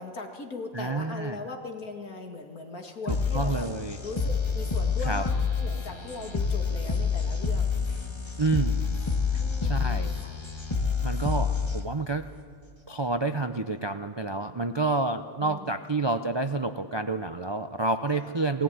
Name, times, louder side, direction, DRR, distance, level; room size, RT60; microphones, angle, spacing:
voice 1, 0.0-3.7 4.0-7.7 9.3-10.4 15.4-15.8 18.1-18.3, left 3 dB, 80° left, 3 dB, 2.5 m, -39 dB
voice 2, 0.7-1.4 3.1-4.0 5.0-5.2 8.4-9.0 9.6-10.1 11.0-12.2 12.9-18.6, right 3 dB, 40° right, 8 dB, 0.3 m, -29 dB
sound 1, 3.1-12.1, left 5 dB, 20° left, 1.5 m, -28 dB
18.5 x 18.0 x 9.5 m, 2.1 s
omnidirectional pair, 1.5 m